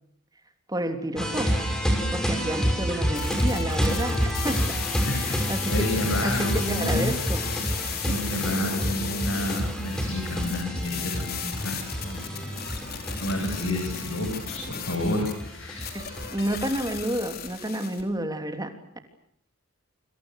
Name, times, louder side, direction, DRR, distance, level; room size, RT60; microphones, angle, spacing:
voice 1, 0.7-1.6 2.1-4.8 5.2-5.9 6.2-7.4 7.8-8.1 15.9-19.0, right 1 dB, 20° right, 6 dB, 3.2 m, -30 dB
sound 1, 1.2-17.0, equal, 5° left, 6.2 m, -29 dB
sound 2, 3.2-18.0, left 8 dB, 45° left, 4.4 m, -36 dB
voice 2, 5.1-7.1 8.0-12.6 13.2-15.9, left 1 dB, 70° left, 2 dB, 7.8 m, -30 dB
28.5 x 27.0 x 6.6 m, 0.67 s
head